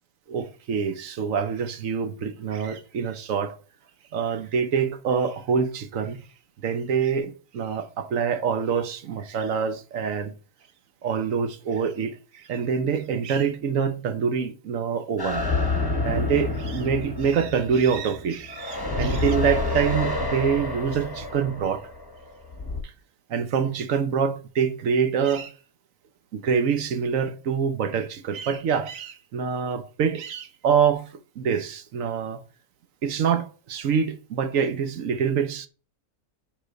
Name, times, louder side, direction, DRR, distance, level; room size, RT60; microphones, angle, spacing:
voice 1, 0.3-3.5 4.1-6.2 6.6-10.3 11.0-12.1 12.5-15.4 16.0-21.8 23.3-25.5 26.3-31.0 31.4-32.4 33.0-35.7, right 6 dB, 65° right, 1.2 m, -25 dB
sound 1, 15.2-22.8, left 2 dB, 15° left, 1.1 m, -28 dB
6.2 x 5.1 x 5.1 m
omnidirectional pair, 1.6 m